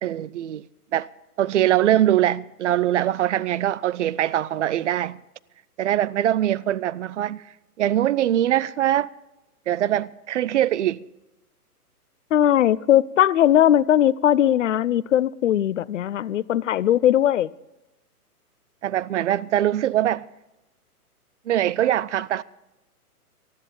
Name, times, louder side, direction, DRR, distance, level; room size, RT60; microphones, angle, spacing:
voice 1, 0.0-0.6 0.9-1.1 1.4-5.2 5.8-7.4 7.8-9.1 9.7-11.0 18.8-20.2 21.5-22.4, right 12 dB, 50° right, 0.6 m, -22 dB
voice 2, 12.3-17.5, left 11 dB, 55° left, 0.6 m, -19 dB
19.0 x 13.0 x 3.8 m
hypercardioid pair, 130°, 47 cm